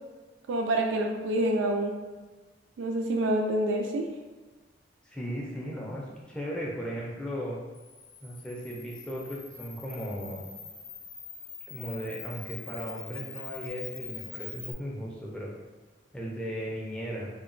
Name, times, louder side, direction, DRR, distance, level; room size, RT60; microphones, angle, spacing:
voice 1, 0.5-2.0 2.8-4.1, right 1 dB, 80° right, 2 dB, 0.3 m, -27 dB
voice 2, 5.0-7.6 8.2-10.5 11.7-15.5 16.1-17.3, equal, 5° left, -4 dB, 0.4 m, -36 dB
Camera, 7.7-14.7, left 6 dB, 85° left, 0.5 m, -44 dB
2.9 x 2.1 x 2.5 m, 1.3 s
head